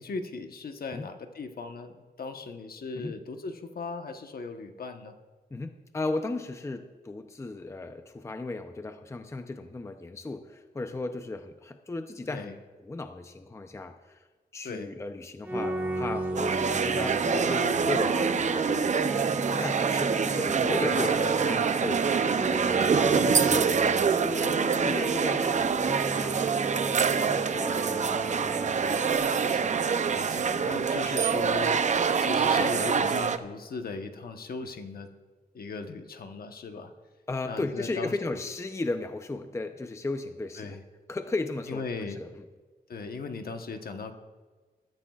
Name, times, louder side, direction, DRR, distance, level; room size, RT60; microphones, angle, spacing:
voice 1, 0.0-5.1 12.3-12.5 14.6-14.9 20.3-20.5 20.9-21.8 29.2-31.8 32.2-35.1 35.5-36.9 37.4-38.2 40.6-40.8 41.7-42.2 42.9-44.1, left 4 dB, 65° left, 6 dB, 1.1 m, -38 dB
voice 2, 5.5-14.2 14.5-18.9 19.5-22.1 22.8-28.2 28.6-29.0 34.6-34.7 37.3-40.8 41.1-42.4, left 2 dB, 15° left, 7 dB, 0.6 m, -36 dB
sound 1, 15.4-29.1, right 1 dB, 10° right, 1.3 m, -35 dB
sound 2, 16.4-33.4, right 6 dB, 45° right, 0.5 m, -25 dB
21.0 x 13.5 x 2.4 m, 1.4 s
wide cardioid pair, 150°, 17 cm